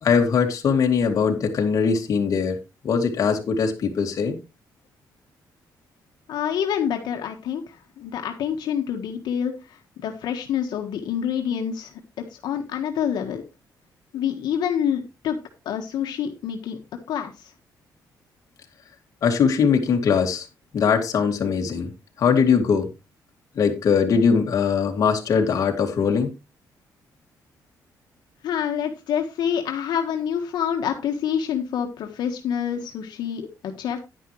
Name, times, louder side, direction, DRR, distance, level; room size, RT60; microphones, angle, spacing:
voice 1, 0.0-2.6 2.8-4.4 19.2-20.4 20.7-21.9 22.2-22.9 23.6-26.3, left 6 dB, 50° left, 2.2 m, -21 dB
voice 2, 6.3-7.6 8.0-9.5 10.0-11.9 12.2-13.4 14.1-15.4 15.6-16.8 17.1-17.3 28.4-34.0, left 8 dB, 85° left, 1.4 m, -27 dB
10.5 x 9.9 x 3.1 m
cardioid pair, 165°, 7 cm